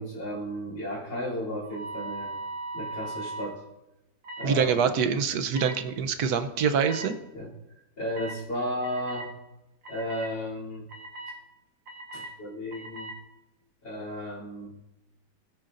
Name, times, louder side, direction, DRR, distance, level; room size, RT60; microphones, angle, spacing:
voice 1, 0.0-2.3 2.7-3.6 4.4-4.9 7.3-7.5 8.0-9.3 9.9-10.9 12.1-13.1 13.8-14.8, equal, 85° left, -4 dB, 4.0 m, -34 dB
sound 1, 1.7-3.5 4.2-4.5 5.5-5.7 6.9-7.0 8.1-8.4 8.8-9.3 9.8-10.3 10.9-11.3 11.9-12.3 12.7-13.1, right 2 dB, 90° right, 2.2 m, -38 dB
voice 2, 4.4-7.2, right 6 dB, 65° right, 8 dB, 1.3 m, -25 dB
20.5 x 8.9 x 2.6 m, 0.97 s
omnidirectional pair, 1.9 m